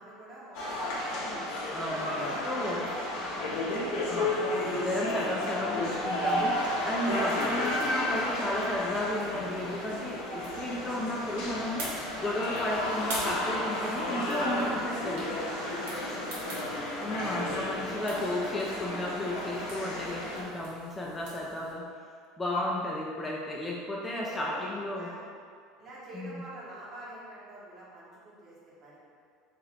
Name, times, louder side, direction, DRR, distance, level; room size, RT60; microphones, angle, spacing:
voice 1, 0.0-1.4 2.2-3.5 3.9-4.1 10.9-11.1 14.5-16.4 22.7-22.8 24.3-25.2 25.8-28.6 28.8-29.0, right 1 dB, 35° right, -7 dB, 1.1 m, -46 dB
sound 1, 0.5-20.4, left 1 dB, 65° left, 0.7 m, -32 dB
voice 2, 1.7-2.9 4.1-15.3 17.0-21.9 22.4-25.1 26.1-26.4, left 1 dB, 15° left, -4 dB, 0.4 m, -33 dB
sound 2, 6.0-21.7, right 1 dB, 75° right, 0.8 m, -46 dB
2.7 x 2.5 x 3.3 m, 2.3 s
hypercardioid pair, 75°, 0 cm